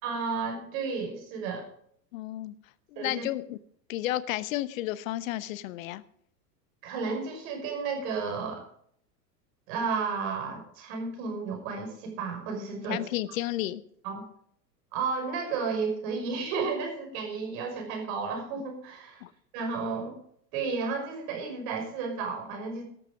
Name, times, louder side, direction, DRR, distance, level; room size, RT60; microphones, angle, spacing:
voice 1, 0.0-1.7 3.0-3.3 6.8-8.6 9.7-13.0 14.0-14.2 14.9-19.2 19.5-20.2 20.5-22.8, right 5 dB, 50° right, 3 dB, 5.7 m, -32 dB
voice 2, 2.1-2.5 2.9-3.6 3.9-6.0 12.9-13.8 19.2-19.3, left 15 dB, 55° left, 17 dB, 1.0 m, -32 dB
13.5 x 11.5 x 5.0 m, 0.65 s
figure-of-eight pair, 85°, 50 cm